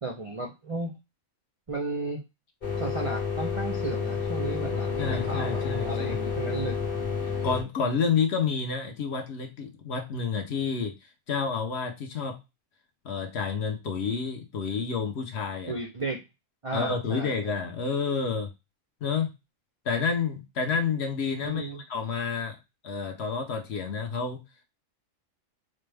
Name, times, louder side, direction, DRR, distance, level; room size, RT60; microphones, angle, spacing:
voice 1, 0.0-0.9 1.7-2.2 2.8-5.6 5.9-6.8 15.7-16.2 16.6-17.5 21.4-21.8, right 2 dB, 45° right, 0.4 m, -34 dB
sound 1, 2.6-7.6, left 5 dB, 40° left, 1.1 m, -30 dB
voice 2, 5.0-6.2 7.4-10.9 11.3-12.4 13.0-15.7 16.7-18.5 19.0-19.3 19.8-22.6 22.8-24.4, left 5 dB, 60° left, 0.9 m, -29 dB
4.1 x 2.1 x 3.3 m
omnidirectional pair, 1.4 m